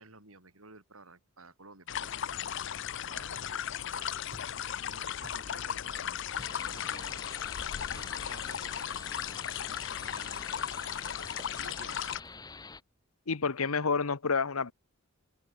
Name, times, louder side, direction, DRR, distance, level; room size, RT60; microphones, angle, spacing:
voice 1, 0.0-2.2 2.5-2.6 2.9-3.5 3.9-4.2 4.8-6.2 6.6-9.0 9.7-10.6 11.5-12.2, right 3 dB, 75° right, 5.8 m, -53 dB
sound 1, 1.9-12.2, left 9 dB, 55° left, 0.5 m, -36 dB
sound 2, 3.3-3.8 4.3-4.8 5.2-5.7 6.4-6.8 7.5-7.7 9.3-9.6 10.3-10.7 11.4-11.6 12.2-12.6, right 1 dB, 30° right, 4.9 m, -55 dB
sound 3, 6.4-12.8, left 4 dB, 20° left, 1.0 m, -47 dB
voice 2, 13.3-14.7, left 5 dB, 85° left, 1.1 m, -29 dB
head